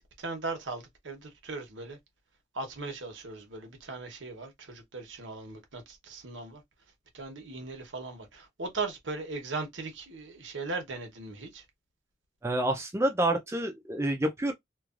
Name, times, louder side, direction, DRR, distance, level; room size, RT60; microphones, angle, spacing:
voice 1, 0.2-2.0 2.5-6.6 7.1-11.6, right 3 dB, 85° right, 1.0 m, -38 dB
voice 2, 12.4-14.5, right 1 dB, 15° right, 0.4 m, -28 dB
3.0 x 2.3 x 2.4 m
head